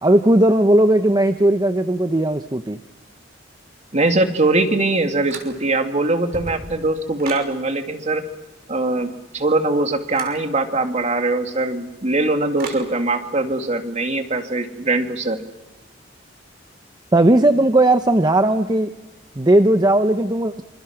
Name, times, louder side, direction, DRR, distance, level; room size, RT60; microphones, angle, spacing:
voice 1, 0.0-2.8 17.1-18.9 19.4-20.6, right 1 dB, 20° right, 8 dB, 0.9 m, -16 dB
voice 2, 3.9-8.2 8.7-15.4, right 2 dB, 40° right, 6 dB, 2.3 m, -21 dB
sound 1, 5.3-5.8 6.2-7.5 10.1-10.4 12.6-12.9, right 3 dB, 55° right, 5.8 m, -35 dB
27.0 x 27.0 x 5.9 m, 1.1 s
head